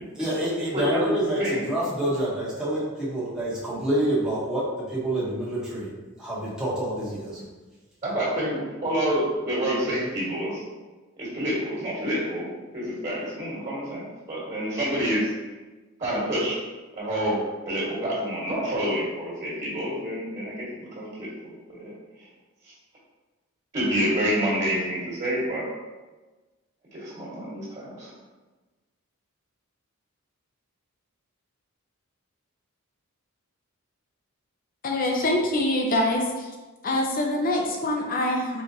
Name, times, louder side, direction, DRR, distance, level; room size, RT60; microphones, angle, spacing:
voice 1, 0.1-4.6 4.9-5.9 6.2-7.5, right 1 dB, 5° right, -8 dB, 0.9 m, -27 dB
voice 2, 0.7-1.6 8.0-10.6 11.2-12.5 12.7-15.3 16.0-16.6 16.9-21.3 21.7-21.9 23.7-25.6 26.9-28.1, equal, 30° right, -7 dB, 1.3 m, -28 dB
voice 3, 34.8-36.5 36.8-38.6, left 1 dB, 40° left, 1 dB, 0.6 m, -24 dB
4.0 x 3.5 x 2.6 m, 1.2 s
head